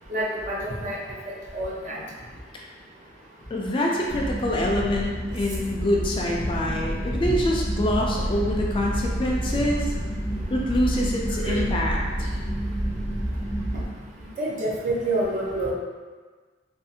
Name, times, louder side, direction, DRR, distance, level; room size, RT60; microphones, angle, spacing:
voice 1, 0.1-1.0 1.5-2.0 11.4-11.7 14.4-15.7, right 1 dB, 40° right, -4 dB, 0.5 m, -27 dB
voice 2, 3.5-9.9 10.5-12.0, left 1 dB, 30° left, -2 dB, 0.3 m, -25 dB
sound 1, 4.1-13.8, right 1 dB, 25° right, 0.9 m, -29 dB
2.5 x 2.4 x 2.7 m, 1.4 s
head